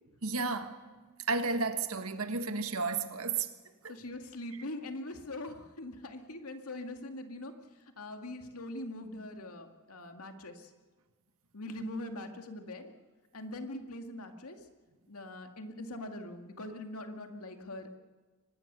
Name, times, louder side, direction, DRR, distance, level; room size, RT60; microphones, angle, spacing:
voice 1, 0.2-0.7 1.3-3.5 3.8-3.9, right 4 dB, 70° right, 1.6 m, -32 dB
voice 2, 3.9-7.5 8.0-10.7 11.5-12.9 13.3-14.6 15.1-18.0, left 1 dB, 80° left, 2.2 m, -42 dB
24.5 x 19.5 x 6.9 m
head